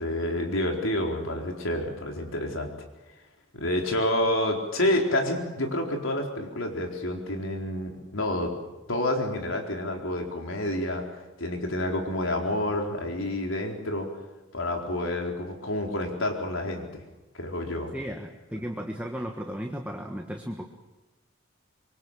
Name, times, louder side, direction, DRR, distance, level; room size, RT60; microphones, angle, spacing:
voice 1, 0.0-2.7 3.5-8.5 8.9-11.1 11.4-14.1 14.5-17.0 17.4-17.9, left 1 dB, 85° left, 2 dB, 4.3 m, -28 dB
voice 2, 17.9-20.6, equal, 5° right, 2 dB, 1.5 m, -35 dB
26.0 x 23.5 x 7.5 m, 1.1 s
head